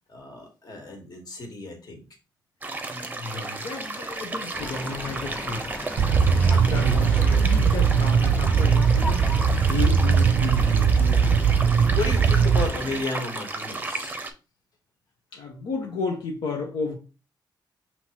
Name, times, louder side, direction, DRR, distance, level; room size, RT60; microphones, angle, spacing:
voice 1, 0.1-2.0 11.9-14.2, left 3 dB, 55° left, 1.5 m, -33 dB
sound 1, 2.6-14.3, right 2 dB, 20° right, 0.6 m, -34 dB
voice 2, 2.9-5.7 6.1-9.3 9.7-11.5 15.3-16.9, left 4 dB, 85° left, 1.0 m, -33 dB
sound 2, 4.5-13.0, left 1 dB, 15° left, 1.1 m, -37 dB
sound 3, 6.0-12.7, right 6 dB, 80° right, 0.4 m, -20 dB
5.8 x 3.0 x 3.0 m
cardioid pair, 105°, 8 cm